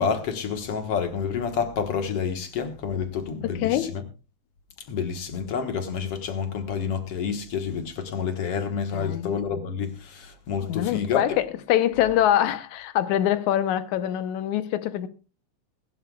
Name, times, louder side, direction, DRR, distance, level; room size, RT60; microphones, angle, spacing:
voice 1, 0.0-4.0 4.9-11.3, left 6 dB, 60° left, 2.2 m, -29 dB
voice 2, 3.4-4.0 8.9-9.4 10.6-15.1, left 11 dB, 80° left, 2.3 m, -24 dB
22.0 x 12.0 x 2.3 m
omnidirectional pair, 3.4 m